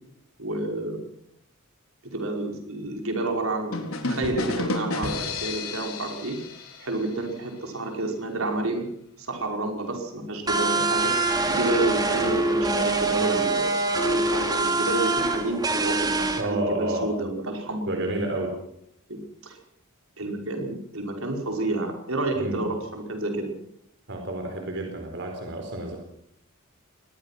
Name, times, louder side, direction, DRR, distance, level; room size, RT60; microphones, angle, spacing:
voice 1, 0.4-1.0 2.1-3.8 4.1-6.4 6.8-8.9 9.2-11.1 11.5-13.7 14.0-18.3 19.1-19.6 20.2-23.5, right 2 dB, 80° right, 2 dB, 5.4 m, -30 dB
sound 1, 3.7-7.4, left 2 dB, 85° left, 4.2 m, -31 dB
sound 2, 10.5-16.4, right 3 dB, 20° right, 2.7 m, -24 dB
voice 2, 16.3-17.2 17.9-18.6 22.3-22.7 24.1-26.0, right 1 dB, 55° right, 3 dB, 4.4 m, -30 dB
24.0 x 20.0 x 6.1 m, 0.72 s
head